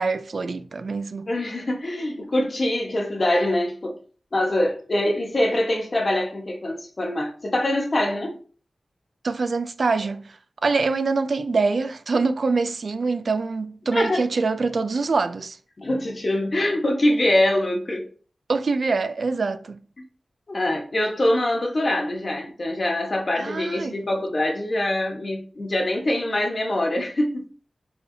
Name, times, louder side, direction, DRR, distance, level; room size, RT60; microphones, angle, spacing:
voice 1, 0.0-1.3 9.2-10.4 10.6-15.6 18.5-19.8 23.4-24.0, right 4 dB, 70° right, 0.4 m, -24 dB
voice 2, 1.3-4.0 4.3-8.4 13.9-14.2 15.8-18.1 20.5-27.5, left 1 dB, 50° left, 1.2 m, -24 dB
4.6 x 3.4 x 2.7 m
wide cardioid pair, 60°, 0 cm